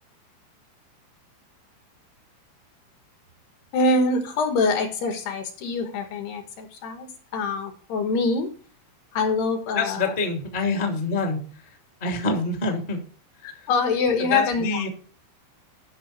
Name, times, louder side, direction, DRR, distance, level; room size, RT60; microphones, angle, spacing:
voice 1, 3.7-8.5 9.1-10.1 13.4-14.8, left 3 dB, 65° left, 6 dB, 3.0 m, -25 dB
voice 2, 9.7-11.4 12.0-13.0 13.5-13.7 14.2-14.9, left 3 dB, 35° left, 3 dB, 0.8 m, -26 dB
13.0 x 5.8 x 4.3 m, 0.42 s
omnidirectional pair, 5.7 m